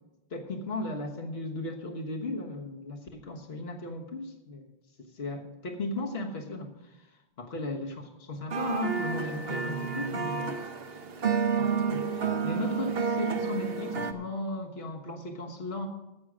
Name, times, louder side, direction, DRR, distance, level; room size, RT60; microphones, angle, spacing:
voice 1, 0.3-4.7 5.0-7.1 7.4-10.6 11.6-15.9, left 2 dB, 70° left, 3 dB, 1.5 m, -36 dB
sound 1, 8.5-14.1, right 6 dB, 65° right, 1.1 m, -30 dB
15.5 x 6.3 x 6.2 m, 0.98 s
omnidirectional pair, 1.1 m